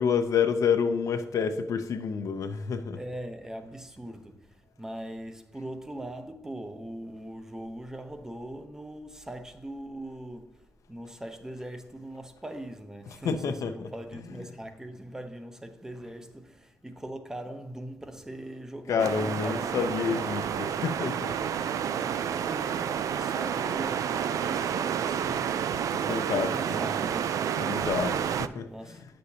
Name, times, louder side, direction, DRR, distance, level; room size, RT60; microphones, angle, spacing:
voice 1, 0.0-3.0 13.2-13.9 18.9-22.0 25.9-26.6 27.6-29.1, left 6 dB, 80° left, 0.7 m, -29 dB
voice 2, 2.9-19.9 20.1-20.4 21.9-26.1 26.5-27.7 28.7-29.1, right 1 dB, 10° right, 0.7 m, -41 dB
sound 1, 19.0-28.5, right 8 dB, 85° right, 0.3 m, -30 dB
9.2 x 6.5 x 2.8 m
wide cardioid pair, 125°, 6 cm